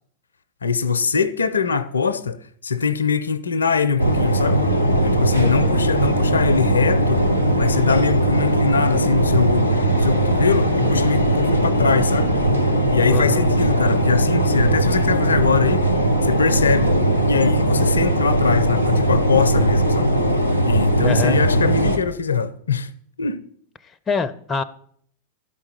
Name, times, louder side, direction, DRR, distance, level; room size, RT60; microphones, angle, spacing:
voice 1, 0.6-2.4 2.6-4.6 5.0-7.3 7.6-12.3 12.9-15.9 16.2-16.9 17.3-20.2 20.7-22.9 23.2-23.4, left 5 dB, 75° left, 0.4 m, -22 dB
sound 1, 4.0-22.0, right 1 dB, 90° right, 0.8 m, -19 dB
voice 2, 5.4-5.7 13.0-13.5 21.0-21.4 24.1-24.6, left 5 dB, 20° left, 0.5 m, -25 dB
11.5 x 4.8 x 5.6 m
figure-of-eight pair, 90°, 0 cm